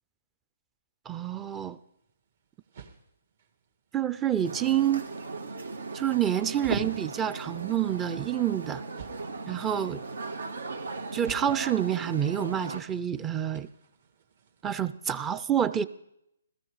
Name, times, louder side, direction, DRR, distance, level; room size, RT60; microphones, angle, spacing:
voice 1, 1.1-1.8 3.9-5.1 5.9-8.8 9.5-10.0 11.1-13.7 14.6-15.9, right 10 dB, 15° right, 15 dB, 0.6 m, -28 dB
sound 1, 1.4-14.8, right 4 dB, 55° right, 1.9 m, -45 dB
sound 2, 4.4-12.8, right 3 dB, 80° right, 1.6 m, -38 dB
16.0 x 14.0 x 4.9 m, 0.77 s
hypercardioid pair, 145°, 0 cm